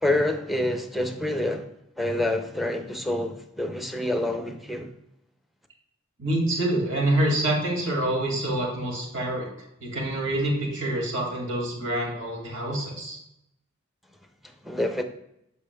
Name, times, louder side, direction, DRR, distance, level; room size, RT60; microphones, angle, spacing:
voice 1, 0.0-1.7 2.0-4.9 14.6-15.0, left 1 dB, ahead, 0.6 m, -27 dB
voice 2, 6.2-9.5 9.8-13.2, right 1 dB, 65° right, 2.2 m, -26 dB
8.6 x 6.8 x 2.2 m
head